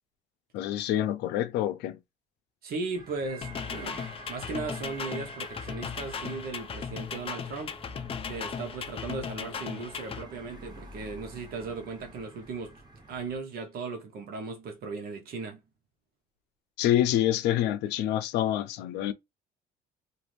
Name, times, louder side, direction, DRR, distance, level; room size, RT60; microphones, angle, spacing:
voice 1, 0.5-2.0 16.8-19.1, left 12 dB, 85° left, 0.5 m, -27 dB
voice 2, 2.6-7.7 8.3-12.8 13.1-15.6, right 4 dB, 65° right, 0.8 m, -37 dB
sound 1, 2.9-13.4, right 1 dB, 25° right, 1.0 m, -49 dB
sound 2, 3.4-10.2, left 6 dB, 35° left, 0.5 m, -37 dB
2.6 x 2.5 x 3.0 m
cardioid pair, 110°, 17 cm